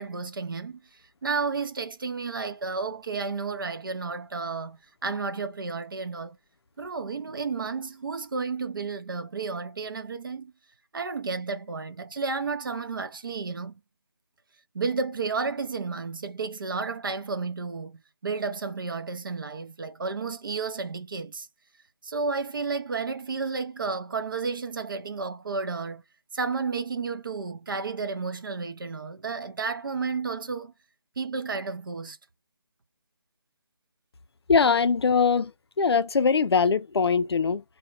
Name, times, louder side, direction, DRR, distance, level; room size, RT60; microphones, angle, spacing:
voice 1, 0.0-6.4 6.8-10.5 10.9-13.8 14.7-21.5 22.0-26.0 26.3-30.7 31.2-32.2, right 4 dB, 55° right, 0.5 m, -32 dB
voice 2, 34.5-35.5 35.8-37.6, left 5 dB, 75° left, 0.4 m, -22 dB
2.2 x 2.1 x 3.7 m
figure-of-eight pair, 170°, 14 cm